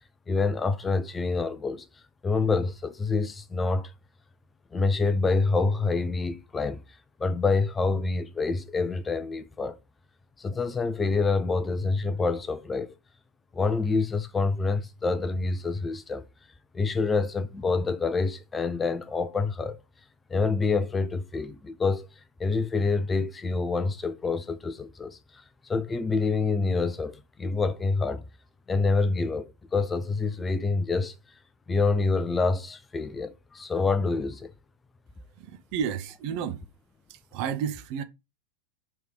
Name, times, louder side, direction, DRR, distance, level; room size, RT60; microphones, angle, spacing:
voice 1, 0.3-1.9 2.2-3.9 4.7-6.8 7.2-9.8 10.4-12.9 13.5-16.2 16.7-19.8 20.3-22.1 22.4-25.2 25.7-28.2 28.7-31.2 31.7-34.5, left 3 dB, 15° left, 0.4 m, -27 dB
voice 2, 35.4-36.6 37.1-38.0, right 8 dB, 45° right, 0.5 m, -32 dB
3.5 x 3.2 x 4.7 m
figure-of-eight pair, 90°, 0 cm